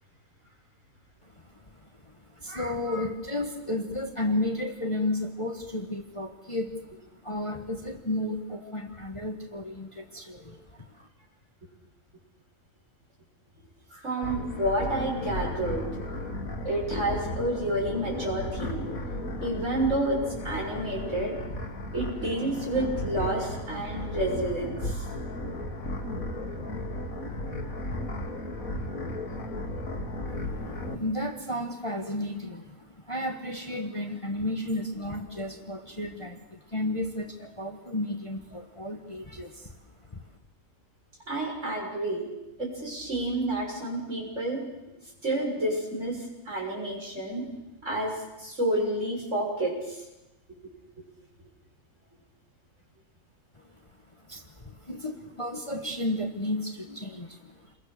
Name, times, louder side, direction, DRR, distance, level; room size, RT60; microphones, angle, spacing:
voice 1, 2.0-6.8 7.2-11.1 30.9-39.7 40.1-40.2 53.6-53.7 54.3-57.6, left 1 dB, 25° left, 4 dB, 1.4 m, -33 dB
voice 2, 13.9-16.3 16.6-18.9 19.4-20.2 20.4-21.3 21.9-25.1 41.3-42.3 42.6-44.6 45.2-47.5 47.8-50.0, right 1 dB, 60° right, -2 dB, 7.3 m, -30 dB
sound 1, 14.2-31.0, left 1 dB, 90° left, 2.5 m, -34 dB
29.0 x 22.0 x 6.7 m, 1.0 s
omnidirectional pair, 1.4 m